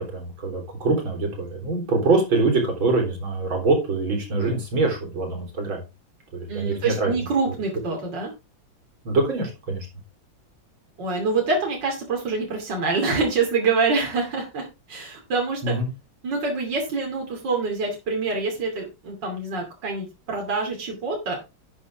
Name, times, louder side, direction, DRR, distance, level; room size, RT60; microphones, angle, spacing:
voice 1, 0.0-5.8 6.3-7.1 9.0-9.9 15.6-15.9, right 3 dB, 80° right, 2 dB, 4.4 m, -24 dB
voice 2, 6.5-8.3 11.0-15.8 16.2-21.4, right 4 dB, 60° right, 0 dB, 3.3 m, -26 dB
11.5 x 8.4 x 3.5 m, 0.26 s
omnidirectional pair, 2.1 m